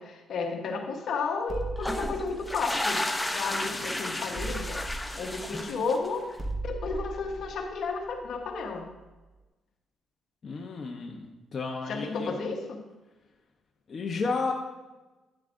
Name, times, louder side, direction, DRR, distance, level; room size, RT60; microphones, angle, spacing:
voice 1, 0.0-4.9 5.2-8.9 11.9-12.8, left 4 dB, 65° left, 3 dB, 1.1 m, -33 dB
sound 1, 1.5-3.8 4.4-9.0, right 2 dB, 5° right, 1.2 m, -38 dB
sound 2, 1.8-6.3, left 1 dB, 10° left, 0.6 m, -33 dB
voice 2, 10.4-12.4 13.9-14.5, left 4 dB, 45° left, 1 dB, 0.8 m, -32 dB
10.0 x 7.3 x 2.6 m, 1.1 s
cardioid pair, 90°, 0 cm